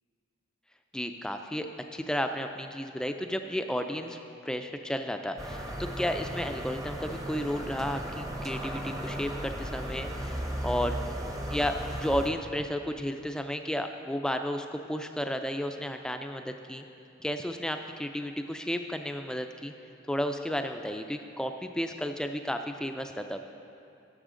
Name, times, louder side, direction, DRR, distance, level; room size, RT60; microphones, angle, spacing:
voice 1, 0.9-1.7 1.9-4.2 4.4-11.0 11.5-16.8 17.2-19.7 20.1-23.4, equal, 5° left, 6 dB, 0.3 m, -33 dB
sound 1, 5.4-12.3, right 1 dB, 15° right, 0.7 m, -36 dB
13.0 x 7.2 x 3.8 m, 2.7 s
head